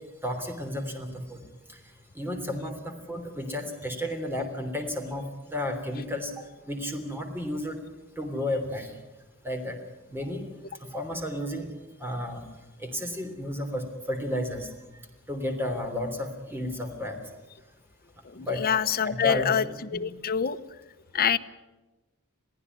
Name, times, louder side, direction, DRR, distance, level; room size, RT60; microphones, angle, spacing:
voice 1, 0.2-1.4 1.7-1.8 2.1-6.3 6.7-7.8 8.2-8.9 9.4-9.8 10.1-10.4 10.8-11.7 12.0-12.4 12.8-14.7 15.3-17.1 18.4-18.6 19.0-20.0, left 1 dB, 10° right, 5 dB, 3.2 m, -32 dB
voice 2, 18.3-19.6 19.9-20.6 21.1-21.4, left 7 dB, 45° left, 9 dB, 0.9 m, -25 dB
22.5 x 15.0 x 9.5 m, 1.1 s
head